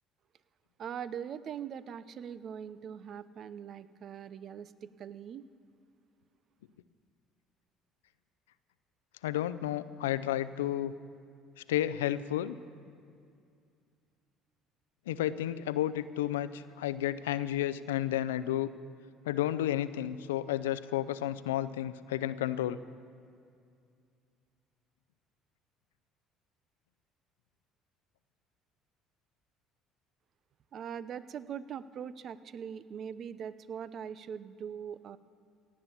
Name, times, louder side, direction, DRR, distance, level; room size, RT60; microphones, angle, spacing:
voice 1, 0.8-5.4 30.7-35.2, right 8 dB, 50° right, 16 dB, 0.6 m, -41 dB
voice 2, 9.2-10.9 11.7-12.6 15.1-18.7 19.3-22.8, left 12 dB, 85° left, 15 dB, 0.4 m, -32 dB
17.0 x 8.7 x 7.2 m, 2.4 s
hypercardioid pair, 60°, 0 cm